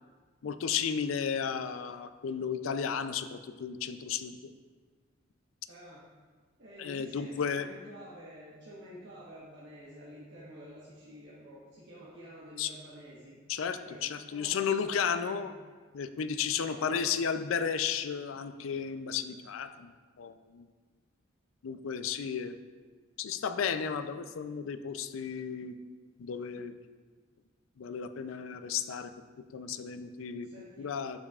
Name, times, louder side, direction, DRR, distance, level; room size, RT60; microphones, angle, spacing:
voice 1, 0.4-4.4 6.8-7.7 12.6-12.7 13.5-15.5 15.9-20.7 21.6-22.6 23.2-25.8 26.2-26.7 27.8-29.1 29.5-30.5 30.8-31.2, left 7 dB, 80° left, 10 dB, 0.4 m, -33 dB
voice 2, 5.7-6.1 6.6-13.4 13.7-15.5 16.6-17.1 30.4-30.9, equal, 60° right, -8 dB, 1.2 m, -49 dB
11.5 x 5.3 x 2.4 m, 1.5 s
head